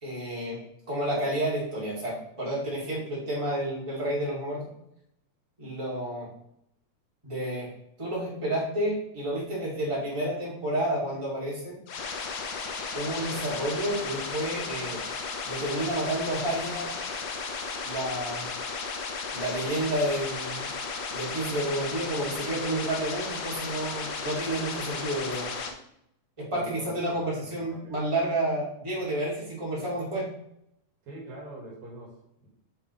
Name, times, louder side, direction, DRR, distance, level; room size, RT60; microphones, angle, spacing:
voice 1, 0.0-0.6 0.9-4.6 5.6-6.3 7.2-7.7 8.0-11.8 12.9-15.0 15.4-16.9 17.8-18.5 19.3-20.7 21.1-25.5 26.4-30.3, right 1 dB, 10° right, -7 dB, 2.8 m, -30 dB
sound 1, 11.9-25.7, left 5 dB, 85° left, 1.0 m, -34 dB
voice 2, 26.5-28.0 31.0-32.5, right 1 dB, 70° right, -2 dB, 3.3 m, -45 dB
7.4 x 6.8 x 3.3 m, 0.77 s
omnidirectional pair, 3.4 m